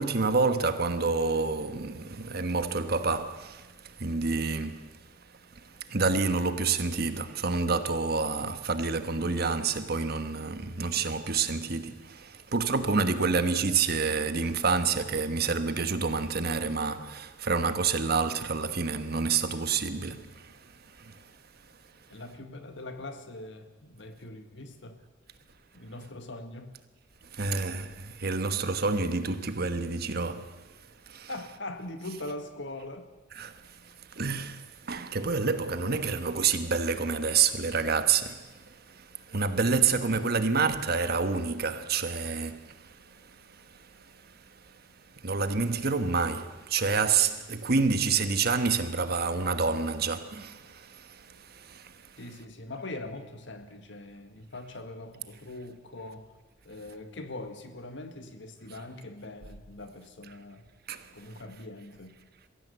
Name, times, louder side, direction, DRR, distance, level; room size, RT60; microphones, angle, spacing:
voice 1, 0.0-3.6 4.0-4.8 5.9-20.3 21.0-21.1 27.3-30.5 31.1-31.3 33.4-33.5 34.2-38.4 39.3-42.7 45.2-50.8 51.7-51.8 60.9-61.0, right 4 dB, 55° right, 1.3 m, -28 dB
voice 2, 22.1-25.0 25.7-26.8 31.3-33.1 40.0-40.8 52.2-56.3 56.6-60.6 61.1-62.1, left 2 dB, 70° left, 1.9 m, -42 dB
22.5 x 15.5 x 8.1 m
head